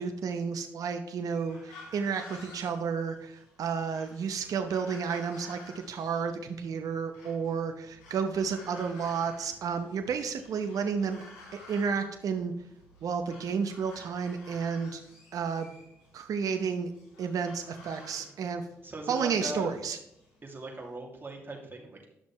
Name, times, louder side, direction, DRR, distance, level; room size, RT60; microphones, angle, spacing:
voice 1, 0.0-11.2 11.7-12.5 13.0-15.0 15.3-15.7 16.1-16.9 17.2-18.6 19.1-20.0, right 6 dB, 65° right, 7 dB, 0.9 m, -31 dB
sound 1, 1.3-20.9, left 2 dB, 85° left, 3.1 m, -53 dB
voice 2, 18.8-19.7 20.4-22.1, right 1 dB, 35° right, 0 dB, 2.5 m, -40 dB
10.5 x 6.2 x 3.1 m, 0.80 s
hypercardioid pair, 45°, 7 cm